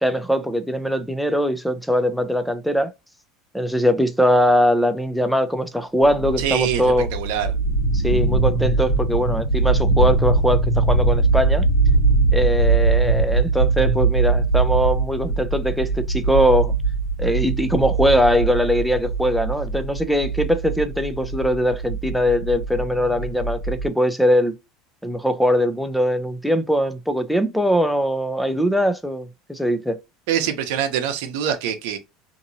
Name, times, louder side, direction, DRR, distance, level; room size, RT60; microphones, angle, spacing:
voice 1, 0.0-2.9 3.5-7.1 7.9-11.7 12.3-16.7 17.2-24.5 25.0-30.0, equal, ahead, 0.4 m, -21 dB
sound 1, 6.0-23.9, right 3 dB, 80° left, 1.3 m, -21 dB
voice 2, 6.4-6.8 7.1-7.5 30.3-32.0, right 9 dB, 75° right, 0.7 m, -24 dB
2.8 x 2.7 x 2.6 m
supercardioid pair, 140°, 0 cm